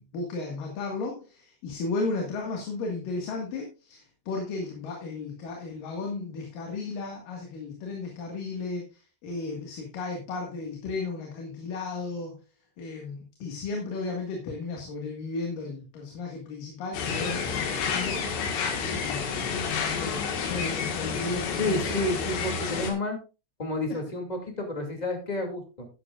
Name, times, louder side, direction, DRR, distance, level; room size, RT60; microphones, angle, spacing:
voice 1, 0.0-12.4 12.8-18.2 18.8-19.5 20.0-21.8, left 3 dB, 60° left, 1 dB, 3.3 m, -34 dB
sound 1, 16.9-22.9, left 6 dB, 90° left, 4.0 m, -30 dB
voice 2, 21.6-23.2 23.6-25.9, left 2 dB, 15° left, 3 dB, 1.4 m, -30 dB
12.5 x 11.0 x 2.5 m, 0.30 s
omnidirectional pair, 4.8 m